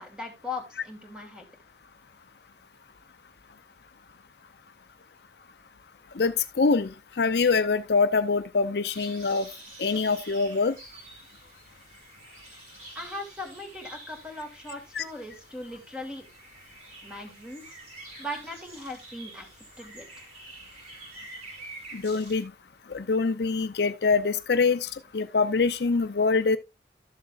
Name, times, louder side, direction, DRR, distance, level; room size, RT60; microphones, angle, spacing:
voice 1, 0.0-1.4 12.9-16.3 17.0-17.8 18.2-19.5 19.8-20.3, left 1 dB, 5° right, 2.7 m, -39 dB
voice 2, 6.1-9.5 9.8-10.8 14.9-15.0 21.9-22.5 22.9-26.6, left 4 dB, 65° left, 0.6 m, -24 dB
sound 1, 8.9-22.5, right 2 dB, 45° right, 4.4 m, -47 dB
13.0 x 7.2 x 2.4 m
head